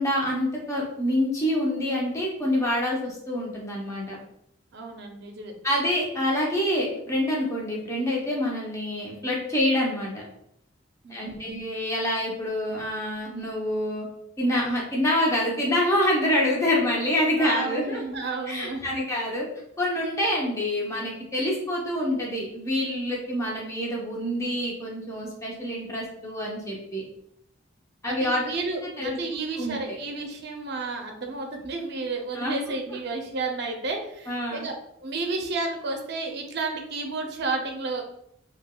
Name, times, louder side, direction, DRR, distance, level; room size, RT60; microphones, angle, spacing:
voice 1, 0.0-4.2 5.6-10.2 11.1-14.1 14.4-18.0 18.5-19.4 19.8-27.0 28.0-28.4 29.0-29.2 29.6-30.0 32.3-32.6 34.3-34.7, left 1 dB, 15° left, -3 dB, 0.7 m, -26 dB
voice 2, 4.7-5.5 11.0-11.5 17.4-19.1 28.1-34.7 35.0-38.0, right 3 dB, 55° right, 3 dB, 0.5 m, -32 dB
3.4 x 2.8 x 2.2 m, 0.73 s
head